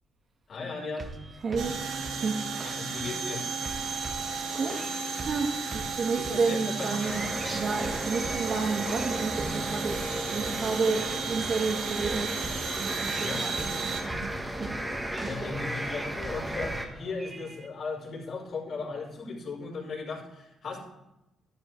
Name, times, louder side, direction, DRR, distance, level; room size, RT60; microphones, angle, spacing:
voice 1, 0.5-1.1 2.6-3.4 5.8-7.2 13.2-13.5 15.2-20.8, left 4 dB, 60° left, -2 dB, 4.8 m, -37 dB
sound 1, 1.0-17.7, right 2 dB, 30° right, 1.1 m, -43 dB
voice 2, 1.4-1.8 2.1-2.4 4.5-4.8 5.2-7.3 7.5-10.0 10.3-12.3 12.8-14.3 14.6-14.7 15.4-15.5, right 4 dB, 50° right, 3 dB, 2.0 m, -31 dB
sound 2, 1.6-14.0, right 5 dB, 80° right, 2.1 m, -34 dB
sound 3, 7.0-16.9, right 1 dB, 10° right, 1.7 m, -35 dB
12.0 x 12.0 x 3.4 m, 0.92 s
cardioid pair, 90°, 0 cm